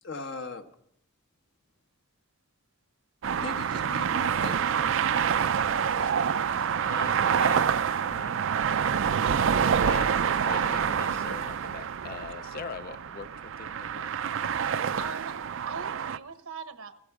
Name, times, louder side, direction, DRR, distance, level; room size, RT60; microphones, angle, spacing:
voice 1, 0.0-0.7 3.4-5.0 6.0-6.2 6.5-6.7, left 3 dB, 60° left, 6 dB, 1.2 m, -40 dB
sound 1, 3.2-16.2, right 7 dB, 65° right, 0.4 m, -27 dB
voice 2, 6.8-7.7 8.0-8.4 9.1-14.1, left 5 dB, 45° left, 13 dB, 0.5 m, -42 dB
voice 3, 14.7-15.4 15.7-17.0, right 5 dB, 85° right, 10 dB, 1.2 m, -41 dB
16.0 x 13.5 x 4.9 m, 0.70 s
head